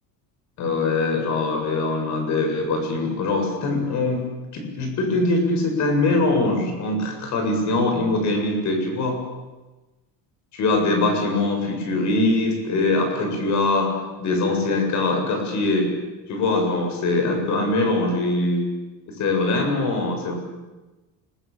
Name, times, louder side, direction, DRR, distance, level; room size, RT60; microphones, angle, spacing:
voice 1, 0.6-4.2 4.5-9.2 10.5-15.9 16.3-18.6 19.1-20.3, left 2 dB, 45° left, 3 dB, 7.7 m, -22 dB
28.0 x 22.0 x 8.8 m, 1.1 s
cardioid pair, 175°, 39 cm